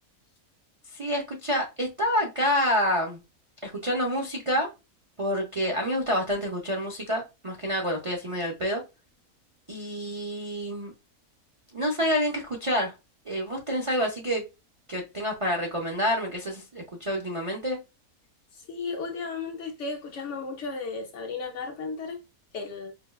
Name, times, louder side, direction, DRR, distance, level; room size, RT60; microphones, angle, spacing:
voice 1, 0.9-3.2 3.6-4.7 5.2-8.8 9.7-10.9 11.7-12.9 13.3-14.4 14.9-17.8, equal, 45° right, 0.4 m, -28 dB
voice 2, 18.7-22.2 22.5-22.9, left 4 dB, 60° left, 0.9 m, -34 dB
5.0 x 2.2 x 2.2 m
omnidirectional pair, 1.6 m